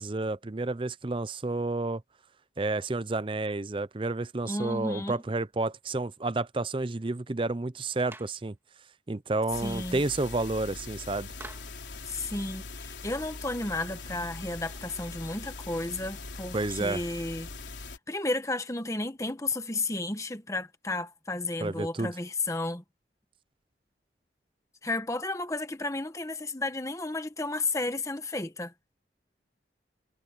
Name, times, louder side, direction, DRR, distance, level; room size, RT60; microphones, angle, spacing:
voice 1, 0.0-2.0 2.6-8.5 9.1-11.3 16.5-17.0 21.6-22.1, right 2 dB, 30° right, 0.6 m, -30 dB
voice 2, 4.5-5.2 9.6-10.0 12.1-17.5 18.1-22.8 24.8-28.7, left 2 dB, 15° left, 1.3 m, -33 dB
Clapping, 8.1-8.4 11.4-11.8, right 2 dB, 15° right, 2.7 m, -46 dB
sound 1, 9.5-18.0, left 3 dB, 85° left, 3.7 m, -42 dB
head